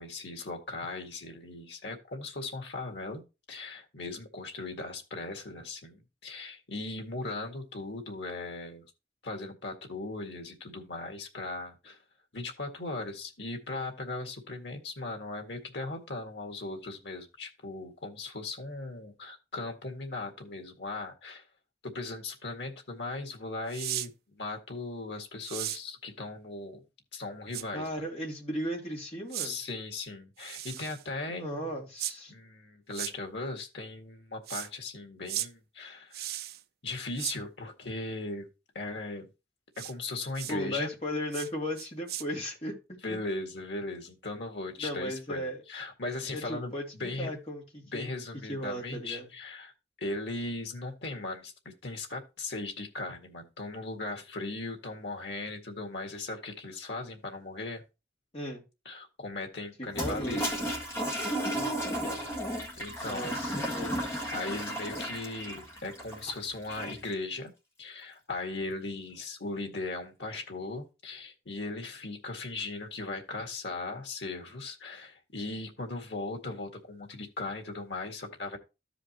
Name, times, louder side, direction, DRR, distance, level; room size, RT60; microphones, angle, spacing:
voice 1, 0.0-3.2 3.5-8.8 9.2-12.0 12.3-21.4 21.8-26.8 27.1-28.0 29.4-31.7 32.3-36.4 36.8-38.5 38.8-39.3 39.8-40.9 43.0-47.3 47.8-49.7 50.0-57.8 58.9-60.5 62.8-63.3 64.3-67.5 67.8-78.6, left 2 dB, 85° left, 4 dB, 1.9 m, -38 dB
sound 1, 23.7-24.1 25.4-25.8 27.5-27.6 29.3-29.5 30.4-31.0 32.0-32.1 32.9-33.1 34.5-34.7 35.3-35.5 36.1-36.6 37.2-37.4 39.8-39.9 40.3-40.5 41.3-41.5 41.8-42.2, right 13 dB, 60° right, 0.4 m, -36 dB
voice 2, 27.7-29.6 31.3-32.3 40.5-42.7 43.1-43.2 44.8-45.6 46.3-48.1 48.5-49.3 58.3-58.6 59.8-60.4 61.5-61.7 62.0-62.2 63.0-64.0, equal, 35° left, -1 dB, 2.4 m, -36 dB
Toilet flush, 59.9-67.1, equal, 15° left, 1.9 m, -34 dB
14.0 x 5.0 x 3.0 m, 0.27 s
head